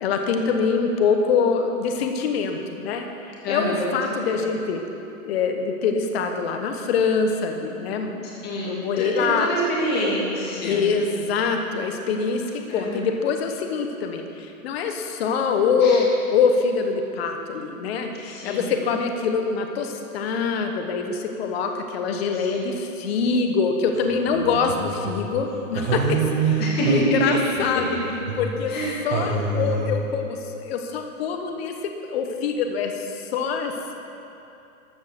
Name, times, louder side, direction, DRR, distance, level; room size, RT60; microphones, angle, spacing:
voice 1, 0.0-4.8 5.2-9.5 10.6-12.4 12.7-26.1 26.4-26.6 26.9-27.9 28.4-28.7 29.0-33.9, left 5 dB, 45° left, 4 dB, 1.2 m, -24 dB
voice 2, 3.4-4.4 8.4-10.8 12.7-13.0 15.8-16.0 18.2-18.7 22.3-22.7 26.6-27.1 28.7-29.0, equal, 20° left, -5 dB, 2.7 m, -27 dB
sound 1, 23.9-25.4 25.7-28.9 29.1-30.1, right 4 dB, 50° right, 1.8 m, -26 dB
13.5 x 6.5 x 6.6 m, 2.8 s
hypercardioid pair, 150°, 42 cm